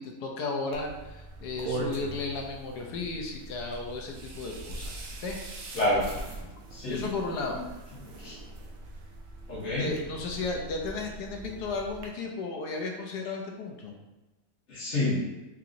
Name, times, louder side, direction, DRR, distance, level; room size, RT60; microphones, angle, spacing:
voice 1, 0.0-5.4 6.9-7.6 9.7-13.9, left 3 dB, 80° left, 1 dB, 1.2 m, -34 dB
sound 1, 0.7-12.1, right 2 dB, 65° right, 1.0 m, -41 dB
voice 2, 5.7-6.1 6.7-7.0 7.5-7.6 8.0-8.4 9.5-9.9 14.7-15.2, left 1 dB, 45° left, -7 dB, 1.5 m, -28 dB
4.8 x 2.8 x 2.5 m, 1.1 s
omnidirectional pair, 1.7 m